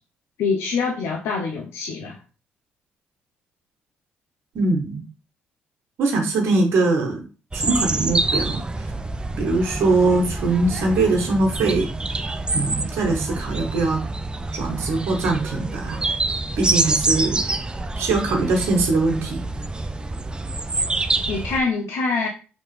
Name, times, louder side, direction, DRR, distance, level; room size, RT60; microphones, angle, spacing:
voice 1, 0.4-2.2 21.3-22.3, left 4 dB, 75° left, 0 dB, 0.7 m, -25 dB
voice 2, 4.5-5.0 6.0-7.2 7.5-8.9 9.4-11.9 12.5-14.0 14.5-16.0 16.6-17.4 18.0-19.4, right 3 dB, 70° right, 2 dB, 1.1 m, -22 dB
sound 1, 7.5-21.6, right 2 dB, 20° right, 0.4 m, -26 dB
5.2 x 2.9 x 3.1 m, 0.34 s
supercardioid pair, 60°, 4 cm